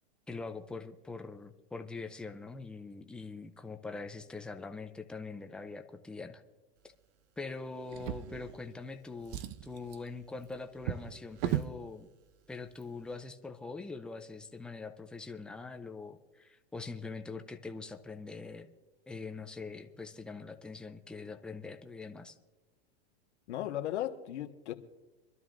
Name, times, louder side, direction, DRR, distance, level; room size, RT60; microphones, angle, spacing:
voice 1, 0.3-6.4 7.4-12.1 12.5-18.7 19.1-22.4, left 3 dB, 5° left, 5 dB, 0.3 m, -43 dB
Drawer open or close, 7.9-8.9 9.2-11.8 12.7-12.8 13.2-13.3, right 12 dB, 40° right, 0.6 m, -38 dB
voice 2, 23.5-24.7, left 12 dB, 90° left, 5 dB, 1.4 m, -36 dB
25.5 x 12.5 x 2.5 m, 1.1 s
supercardioid pair, 150°, 34 cm